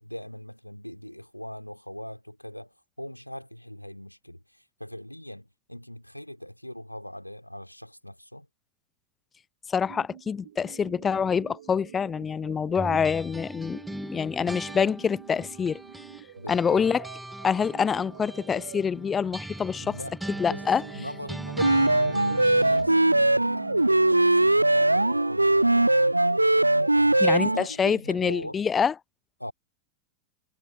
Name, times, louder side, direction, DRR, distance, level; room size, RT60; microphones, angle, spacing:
voice 1, 0.0-8.5 16.4-16.9 19.8-26.1 27.0-28.6 29.4-29.5, equal, 90° left, 2.9 m, -41 dB
voice 2, 9.7-15.8 16.5-17.0 17.4-20.0 20.4-20.8 27.2-28.9, left 6 dB, 20° left, 0.5 m, -26 dB
sound 1, 9.7-25.8, right 12 dB, 60° right, 7.1 m, -46 dB
sound 2, 12.7-16.2 16.5-22.9, right 1 dB, 5° right, 2.5 m, -40 dB
sound 3, 21.6-27.7, right 1 dB, 85° right, 0.5 m, -21 dB
figure-of-eight pair, 90°, 0 cm